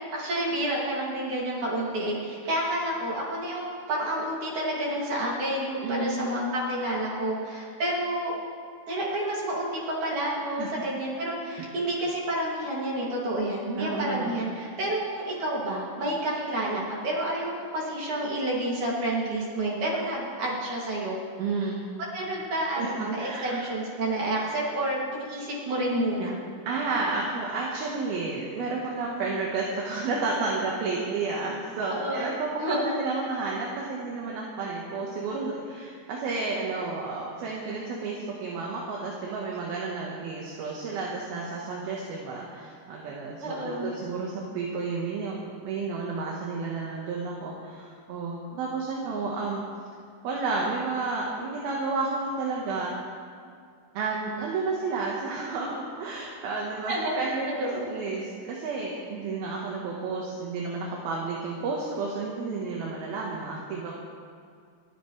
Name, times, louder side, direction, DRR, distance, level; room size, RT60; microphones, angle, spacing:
voice 1, 0.1-8.3 8.9-21.2 22.1-26.4 31.9-32.3 32.6-32.9 43.4-43.9 56.9-57.9, right 1 dB, 50° right, -4 dB, 3.7 m, -29 dB
voice 2, 5.8-6.2 10.6-10.7 11.6-11.7 13.8-14.4 21.4-21.8 22.8-23.7 26.7-49.6 50.2-53.0 53.9-64.0, right 3 dB, 75° right, -3 dB, 3.1 m, -31 dB
29.0 x 10.0 x 3.3 m, 2.2 s
omnidirectional pair, 4.6 m